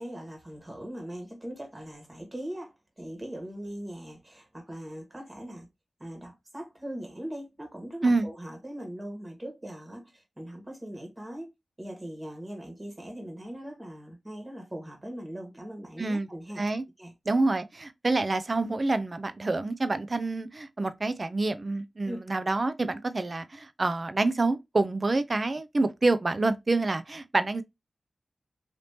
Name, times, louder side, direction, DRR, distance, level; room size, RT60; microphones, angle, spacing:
voice 1, 0.0-5.7 6.0-11.5 11.8-16.6 17.0-17.1 22.0-22.2, right 1 dB, 25° right, 1.4 m, -40 dB
voice 2, 17.3-27.6, right 2 dB, 45° right, 0.5 m, -27 dB
3.4 x 2.8 x 2.7 m
cardioid pair, 55°, 0 cm